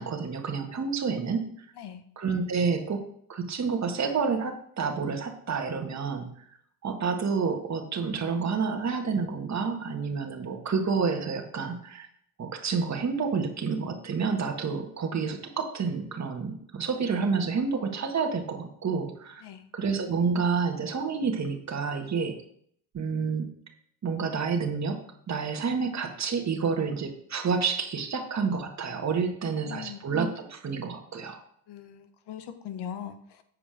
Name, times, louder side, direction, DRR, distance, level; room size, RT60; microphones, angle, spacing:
voice 1, 0.0-1.5 2.2-3.0 3.3-6.3 6.8-12.1 12.4-19.4 19.7-22.3 22.9-23.5 24.0-25.0 25.3-31.4, right 5 dB, 35° right, 3 dB, 1.7 m, -29 dB
voice 2, 29.4-30.1 31.7-33.4, left 9 dB, 55° left, 10 dB, 1.1 m, -41 dB
7.8 x 4.9 x 5.0 m, 0.66 s
supercardioid pair, 85°, 48 cm